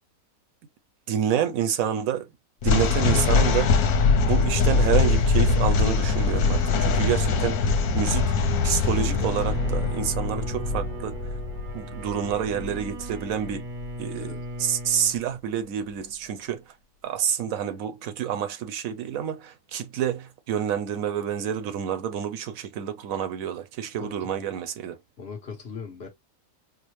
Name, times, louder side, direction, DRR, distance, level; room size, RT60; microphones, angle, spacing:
voice 1, 1.1-2.3 2.6-3.9 4.2-8.3 8.6-11.2 11.7-13.7 14.0-16.6 17.0-25.0, right 9 dB, 70° right, 1.0 m, -28 dB
sound 1, 2.6-13.9, left 4 dB, 85° left, 1.2 m, -23 dB
Bowed string instrument, 8.9-15.2, equal, 45° right, 0.7 m, -37 dB
voice 2, 24.0-24.5 25.2-26.1, left 5 dB, 50° left, 1.2 m, -39 dB
4.8 x 2.1 x 3.0 m
omnidirectional pair, 1.5 m